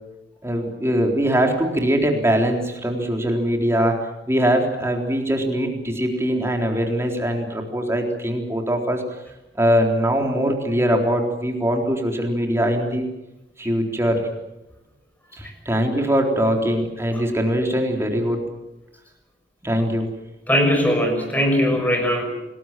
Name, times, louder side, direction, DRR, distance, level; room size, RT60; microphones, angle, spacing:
voice 1, 0.4-4.0 4.3-9.0 9.6-13.1 13.6-14.3 15.4-18.4 19.6-20.1, equal, 15° right, 2 dB, 3.8 m, -22 dB
voice 2, 20.5-22.2, equal, 10° left, 4 dB, 6.4 m, -20 dB
28.5 x 20.0 x 7.6 m, 0.97 s
head